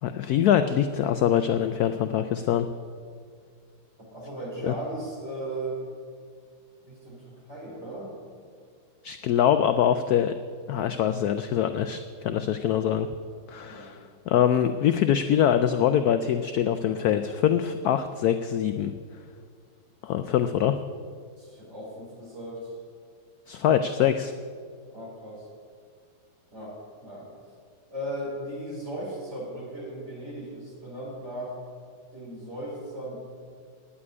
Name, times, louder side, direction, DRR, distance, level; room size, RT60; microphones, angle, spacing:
voice 1, 0.0-2.7 4.6-4.7 9.0-10.3 10.7-13.1 13.5-14.0 14.3-18.9 20.0-20.8 23.5-24.3, left 9 dB, 80° left, 9 dB, 0.8 m, -24 dB
voice 2, 4.0-5.8 6.9-7.2 7.5-8.2 13.6-13.9 21.4-22.8 24.9-25.5 26.5-26.7 27.0-27.3 27.9-31.5 32.1-33.2, right 1 dB, 35° right, -5 dB, 4.6 m, -37 dB
9.7 x 8.6 x 9.6 m, 2.1 s
omnidirectional pair, 2.1 m